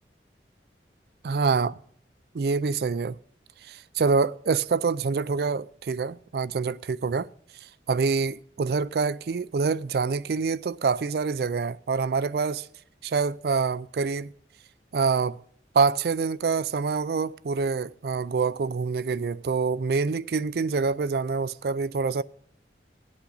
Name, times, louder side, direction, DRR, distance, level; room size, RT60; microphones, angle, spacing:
voice 1, 1.2-1.8 2.3-3.2 3.7-7.3 7.9-12.7 13.0-14.3 14.9-15.4 15.7-22.2, right 4 dB, 60° right, 0.4 m, -26 dB
18.0 x 8.6 x 3.9 m
head